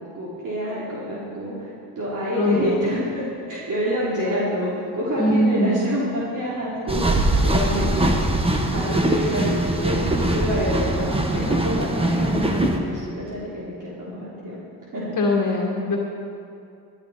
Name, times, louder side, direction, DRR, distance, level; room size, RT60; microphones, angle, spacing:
voice 1, 0.0-8.1 8.7-14.6 14.9-15.2, equal, 50° right, -8 dB, 3.5 m, -27 dB
voice 2, 2.4-2.9 5.2-5.8 15.2-16.0, left 1 dB, 50° left, -2 dB, 2.0 m, -21 dB
sound 1, 6.9-12.8, right 1 dB, 15° right, 1.3 m, -22 dB
19.5 x 10.0 x 4.3 m, 2.5 s
cardioid pair, 105°, 40 cm